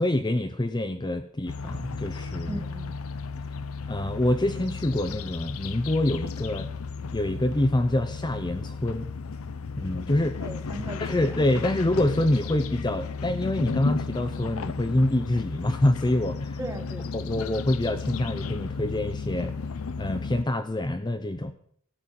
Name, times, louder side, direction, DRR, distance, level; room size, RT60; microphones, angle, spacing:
voice 1, 0.0-2.6 3.9-6.7 7.1-9.1 9.8-10.4 11.0-16.6 17.1-19.6 20.0-21.5, left 1 dB, 20° left, 8 dB, 0.6 m, -26 dB
sound 1, 1.5-20.4, left 4 dB, 75° left, 0.6 m, -34 dB
voice 2, 2.5-2.9 10.4-11.4 16.6-17.1, right 1 dB, 15° right, 6 dB, 1.5 m, -37 dB
14.0 x 6.2 x 9.2 m, 0.64 s
head